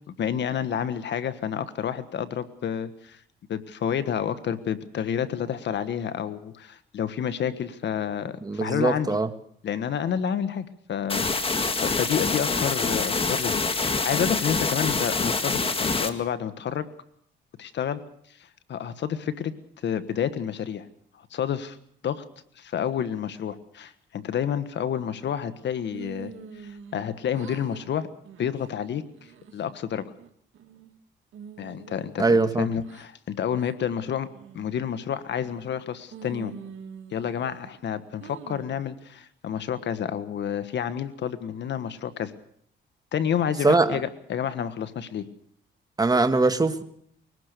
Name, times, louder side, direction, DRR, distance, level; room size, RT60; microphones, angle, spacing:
voice 1, 0.1-3.2 3.5-9.2 9.6-16.9 17.6-18.0 18.7-19.5 19.8-20.9 21.3-21.8 22.0-22.2 22.6-26.3 26.6-28.1 28.4-29.0 29.5-30.0 31.6-34.3 34.5-36.5 37.1-42.3 43.1-45.3, left 8 dB, 60° left, 1.5 m, -29 dB
voice 2, 8.4-9.3 32.2-32.7 43.6-44.0 46.0-46.8, right 3 dB, 20° right, 1.7 m, -21 dB
sound 1, 11.1-16.1, left 3 dB, 30° left, 2.0 m, -26 dB
sound 2, 25.9-27.1 27.3-27.9 28.3-28.6 29.1-29.7 30.2-30.9 31.3-33.1 33.6-33.8 34.3-34.8 35.3-35.8 36.1-37.7 38.2-38.8, right 6 dB, 75° right, 2.3 m, -45 dB
23.0 x 19.0 x 6.8 m
cardioid pair, 90°, 20 cm